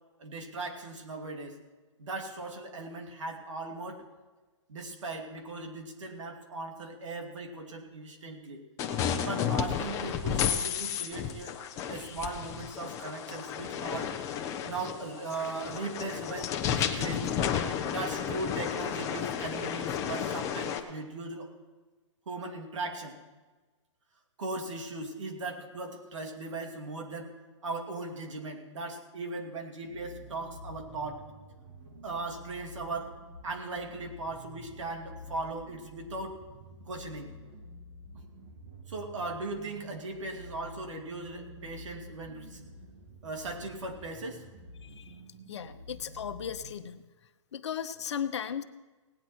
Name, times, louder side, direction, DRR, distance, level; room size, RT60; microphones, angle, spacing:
voice 1, 0.2-1.6 2.0-4.1 4.7-8.6 9.2-11.6 11.9-14.1 14.6-17.3 17.8-21.5 22.3-23.2 24.4-27.3 27.6-31.2 32.0-33.1 33.4-36.4 36.9-37.3 38.9-42.6 43.2-44.4, right 2 dB, 75° right, 3 dB, 2.7 m, -38 dB
sound 1, 8.8-20.8, left 8 dB, 20° left, 0.9 m, -32 dB
sound 2, 29.9-46.7, equal, 40° right, 2.2 m, -49 dB
voice 2, 44.8-45.1 45.5-47.0 47.5-48.6, left 8 dB, 60° left, 10 dB, 0.9 m, -36 dB
18.0 x 9.7 x 4.6 m, 1.3 s
hypercardioid pair, 145°, 16 cm